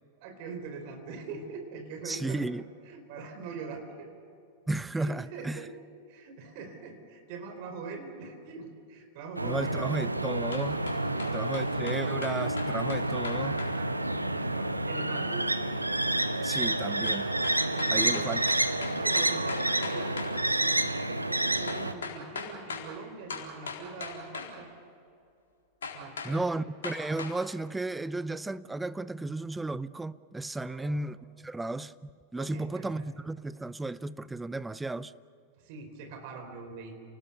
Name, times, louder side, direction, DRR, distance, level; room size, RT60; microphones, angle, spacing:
voice 1, 0.2-2.4 2.9-4.1 5.0-5.7 6.1-10.2 11.1-11.4 14.1-15.5 17.7-18.4 18.9-20.3 20.6-20.8 21.0-24.7 25.9-26.6 30.6-31.1 32.4-32.9 35.6-36.9, right 4 dB, 45° right, 4.7 m, -43 dB
voice 2, 2.0-2.7 4.7-5.7 9.4-10.8 11.3-13.6 16.4-17.3 17.9-18.4 26.2-35.1, right 2 dB, 10° right, 0.6 m, -34 dB
sound 1, 9.4-21.9, right 1 dB, 85° right, 1.0 m, -29 dB
sound 2, 10.5-13.7 17.0-20.3 21.7-22.9 23.3-24.5 25.8-26.3 26.8-27.4, left 5 dB, 65° left, 4.0 m, -39 dB
29.5 x 19.5 x 6.9 m
figure-of-eight pair, 90°, 0 cm